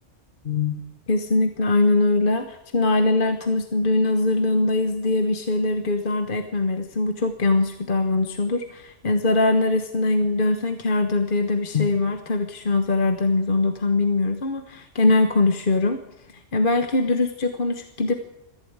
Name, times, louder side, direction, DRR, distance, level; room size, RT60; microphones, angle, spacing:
voice 1, 0.4-0.8 1.1-16.0 16.3-18.1, left 2 dB, 45° left, 7 dB, 1.4 m, -22 dB
20.0 x 15.0 x 8.9 m, 0.87 s
omnidirectional pair, 1.3 m